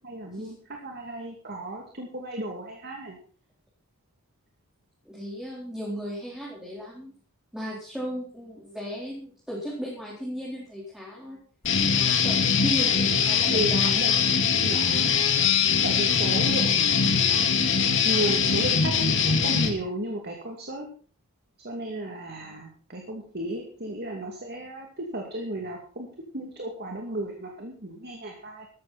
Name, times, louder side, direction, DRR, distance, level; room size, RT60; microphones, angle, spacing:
voice 1, 0.0-3.2 13.5-14.1 14.6-15.4 15.8-17.4 18.0-20.9 21.6-26.1 26.3-28.7, right 1 dB, 50° right, 1 dB, 2.7 m, -34 dB
voice 2, 5.0-7.1 7.5-11.4 12.0-13.9, equal, 5° right, -5 dB, 4.1 m, -36 dB
Guitar, 11.6-19.7, left 6 dB, 60° left, 2.2 m, -22 dB
15.0 x 13.0 x 4.3 m, 0.41 s
head